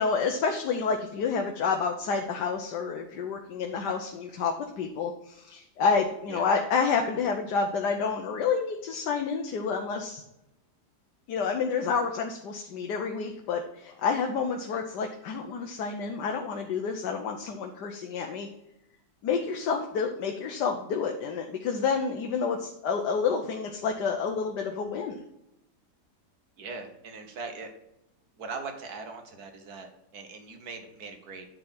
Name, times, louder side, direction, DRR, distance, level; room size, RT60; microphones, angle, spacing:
voice 1, 0.0-10.2 11.3-18.5 19.2-25.2, left 5 dB, 90° left, 3 dB, 1.4 m, -29 dB
voice 2, 26.6-27.7 28.4-31.5, right 4 dB, 65° right, 5 dB, 1.6 m, -40 dB
9.5 x 3.8 x 5.8 m, 0.86 s
omnidirectional pair, 1.7 m